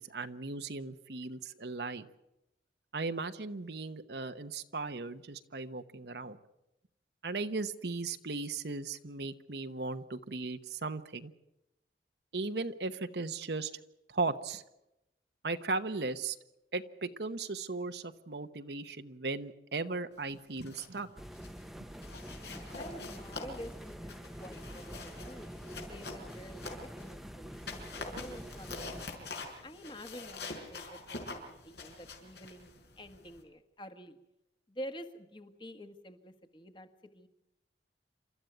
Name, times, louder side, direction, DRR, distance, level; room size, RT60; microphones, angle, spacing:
voice 1, 0.0-2.1 2.9-6.4 7.2-11.3 12.3-13.7 14.1-14.6 15.4-16.4 16.7-21.1, right 3 dB, 70° right, 9 dB, 1.0 m, -37 dB
sound 1, 20.4-21.0 21.3-21.6 22.0-27.1 27.5-33.4, left 3 dB, 75° left, 5.4 m, -45 dB
sound 2, 21.2-29.1, equal, ahead, 0.9 m, -46 dB
voice 2, 22.7-25.5 25.9-34.2 34.7-36.9 37.1-37.3, equal, 25° left, 8 dB, 1.7 m, -49 dB
28.5 x 13.5 x 9.3 m, 0.90 s
head